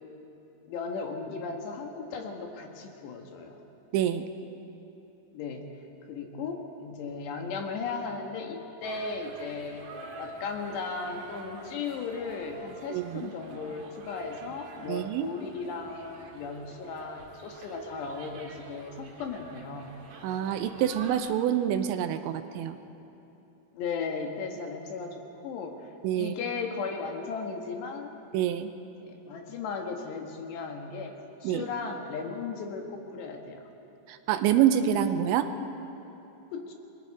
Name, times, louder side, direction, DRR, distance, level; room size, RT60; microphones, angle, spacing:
voice 1, 0.7-3.6 5.3-5.7 6.1-9.9 10.2-20.0 23.7-25.9 26.2-28.1 29.0-33.7 36.5-36.7, left 4 dB, 70° left, 3 dB, 3.6 m, -36 dB
voice 2, 3.9-4.3 12.9-13.3 14.9-15.3 20.2-22.8 26.0-26.3 28.3-28.7 31.4-31.7 34.1-35.5, right 10 dB, 85° right, 9 dB, 3.1 m, -26 dB
sound 1, 8.8-21.2, right 3 dB, 55° right, 2.3 m, -47 dB
30.0 x 22.0 x 4.8 m, 2.9 s
omnidirectional pair, 5.4 m